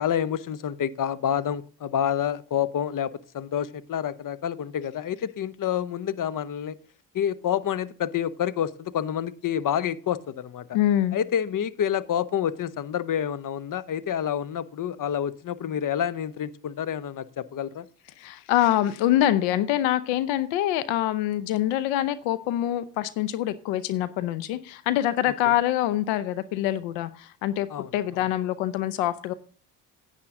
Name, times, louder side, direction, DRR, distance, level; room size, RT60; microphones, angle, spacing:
voice 1, 0.0-6.8 7.1-10.7 11.1-17.9 25.4-25.5 27.7-28.2, left 9 dB, 45° left, 18 dB, 0.8 m, -28 dB
voice 2, 10.7-11.2 18.2-27.7 27.9-29.3, left 13 dB, 80° left, 16 dB, 0.8 m, -25 dB
9.9 x 9.2 x 3.7 m, 0.41 s
supercardioid pair, 60°, 45 cm